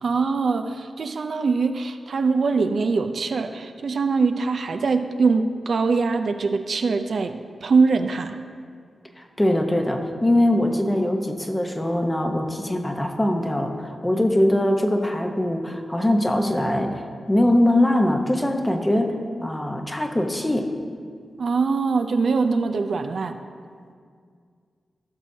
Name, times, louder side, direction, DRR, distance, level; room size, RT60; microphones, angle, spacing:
voice 1, 0.0-8.4 21.4-23.4, right 4 dB, 70° right, 7 dB, 0.4 m, -23 dB
voice 2, 9.2-17.0 17.3-19.2 19.4-20.7, left 1 dB, 15° left, 3 dB, 0.9 m, -22 dB
15.5 x 6.2 x 2.7 m, 2.1 s
cardioid pair, 70°, 0 cm